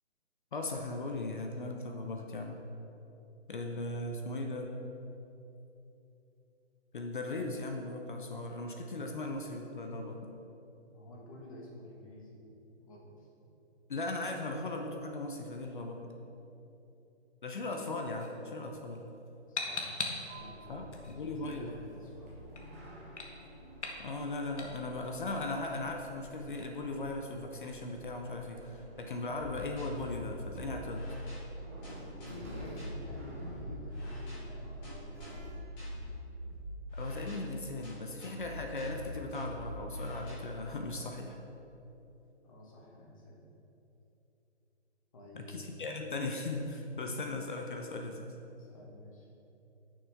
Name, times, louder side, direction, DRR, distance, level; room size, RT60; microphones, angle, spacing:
voice 1, 0.5-2.6 3.5-4.7 6.9-10.2 13.9-16.1 17.4-19.0 20.7-21.7 24.0-31.0 37.0-41.3 45.3-48.3, left 2 dB, 45° left, 3 dB, 0.7 m, -38 dB
voice 2, 10.9-12.5 12.8-13.3 19.5-19.9 20.2-22.5 31.8-35.6 41.0-41.1 42.4-43.4 45.1-45.8 48.5-49.3, left 1 dB, 30° left, -2 dB, 1.4 m, -50 dB
sound 1, 18.2-28.0, left 3 dB, 90° left, 1.4 m, -45 dB
Sliding door, 20.3-35.5, equal, 15° right, 0.6 m, -50 dB
sound 2, 29.4-40.3, equal, 10° left, 1.2 m, -43 dB
10.0 x 6.3 x 3.5 m, 3.0 s
hypercardioid pair, 165°, 34 cm